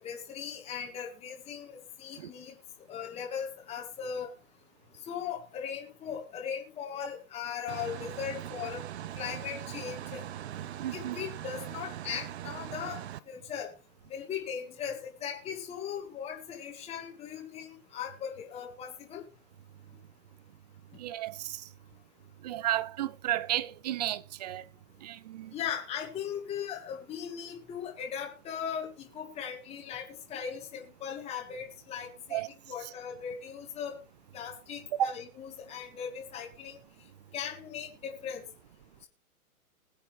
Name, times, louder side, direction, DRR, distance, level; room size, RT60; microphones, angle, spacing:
voice 1, 0.0-2.6 2.9-4.3 5.1-8.8 9.1-10.2 10.9-13.7 14.1-19.2 25.5-32.4 32.7-34.0 34.3-36.8 37.3-38.4, left 8 dB, 15° left, 1.6 m, -38 dB
sound 1, 7.7-13.2, right 11 dB, 50° right, 0.9 m, -41 dB
voice 2, 10.8-11.2 21.0-21.6 22.4-24.6 25.0-25.5 32.3-32.5 35.0-35.1, right 12 dB, 30° right, 0.5 m, -32 dB
21.0 x 7.7 x 3.2 m
hypercardioid pair, 140°, 44 cm